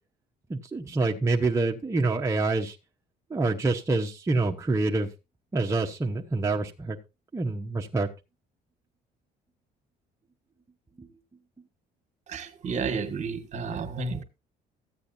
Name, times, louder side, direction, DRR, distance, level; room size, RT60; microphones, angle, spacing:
voice 1, 0.5-2.8 3.3-5.1 5.5-7.0 7.3-8.1 11.0-11.1, right 3 dB, 15° right, 0.9 m, -26 dB
voice 2, 12.3-14.2, right 4 dB, 45° right, 1.5 m, -31 dB
14.0 x 8.5 x 2.7 m
cardioid pair, 110°, 17 cm